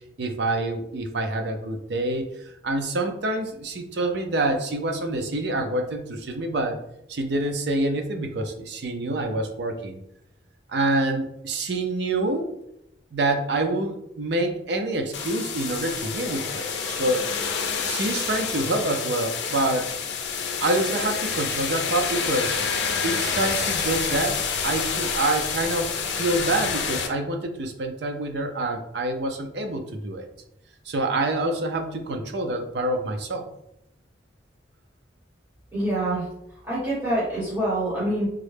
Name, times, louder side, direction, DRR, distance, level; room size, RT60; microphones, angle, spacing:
voice 1, 0.2-6.8 7.1-10.0 10.7-12.5 13.1-17.3 17.8-19.9 20.6-22.6 23.0-24.4 24.6-30.3 30.9-33.5, right 2 dB, 65° right, 4 dB, 0.5 m, -26 dB
sound 1, 15.1-27.1, left 6 dB, 75° left, 0.5 m, -28 dB
voice 2, 35.7-36.3 36.7-38.3, right 1 dB, 15° right, -9 dB, 1.0 m, -25 dB
3.6 x 2.1 x 3.3 m, 0.81 s
head